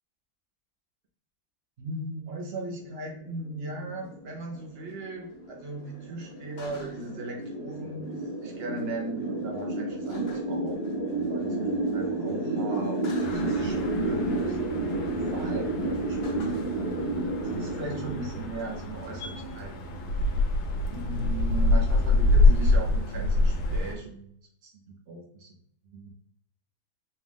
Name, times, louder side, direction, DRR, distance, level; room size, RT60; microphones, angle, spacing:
voice 1, 1.8-16.5 17.4-19.7 20.9-24.3 24.6-24.7 25.1-25.5 25.8-26.1, right 2 dB, 70° right, 0 dB, 0.5 m, -38 dB
sound 1, 3.0-19.3, right 2 dB, 55° left, 0.7 m, -31 dB
sound 2, 13.2-23.9, left 2 dB, 85° left, 1.6 m, -26 dB
4.5 x 2.4 x 3.4 m, 0.67 s
omnidirectional pair, 2.2 m